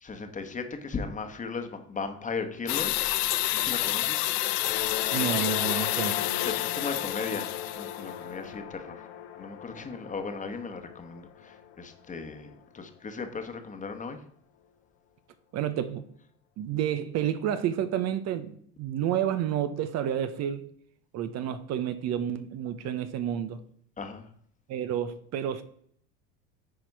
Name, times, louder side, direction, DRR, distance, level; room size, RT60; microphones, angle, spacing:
voice 1, 0.0-3.1 3.5-4.2 6.4-9.1 9.4-14.2 24.0-24.3, left 4 dB, 20° left, 1.3 m, -37 dB
sound 1, 2.7-8.1, left 16 dB, 70° left, 0.8 m, -29 dB
sound 2, 4.5-12.9, left 10 dB, 85° left, 1.4 m, -38 dB
voice 2, 5.1-6.2 15.5-16.0 16.6-20.7 21.1-23.6 24.7-25.6, right 10 dB, 50° right, 0.9 m, -30 dB
9.6 x 4.3 x 4.7 m
supercardioid pair, 100°, 34 cm